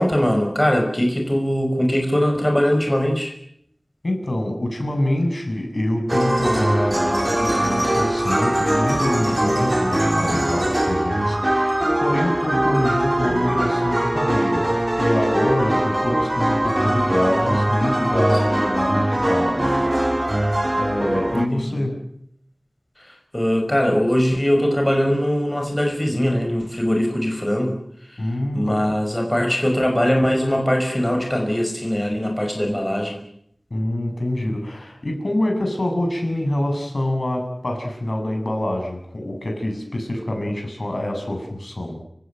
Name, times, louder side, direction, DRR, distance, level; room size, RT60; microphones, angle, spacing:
voice 1, 0.0-3.4 9.2-9.6 21.3-21.9 23.0-27.8 28.0-33.2, equal, 20° left, 2 dB, 5.6 m, -21 dB
voice 2, 4.0-20.1 20.8-22.0 28.2-28.9 33.7-42.0, left 1 dB, 60° left, 3 dB, 8.0 m, -25 dB
sound 1, 6.1-21.5, right 1 dB, 30° right, 1.7 m, -21 dB
29.5 x 16.5 x 9.2 m, 0.71 s
wide cardioid pair, 50°, 0 cm